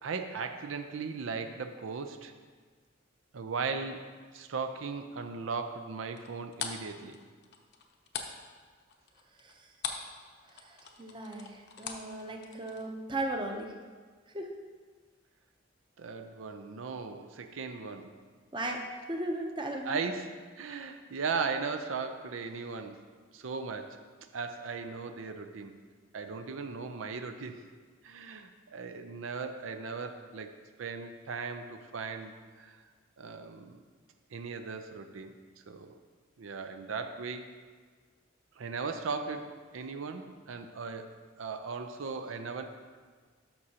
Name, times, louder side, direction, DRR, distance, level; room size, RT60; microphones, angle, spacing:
voice 1, 0.0-2.3 3.3-4.0 4.3-7.2 16.0-18.1 19.8-23.0 23.3-24.0 24.3-25.8 26.1-27.6 28.0-32.8 33.2-33.8 34.3-35.4 35.7-36.0 36.4-37.5 38.6-42.6, right 4 dB, 90° right, 7 dB, 0.5 m, -37 dB
sound 1, 6.2-10.2 10.4-12.8, left 6 dB, 55° left, 0.7 m, -40 dB
voice 2, 10.5-13.7 14.3-14.5 18.5-20.0, right 1 dB, 25° right, 2 dB, 0.7 m, -37 dB
11.5 x 6.3 x 2.9 m, 1.5 s
head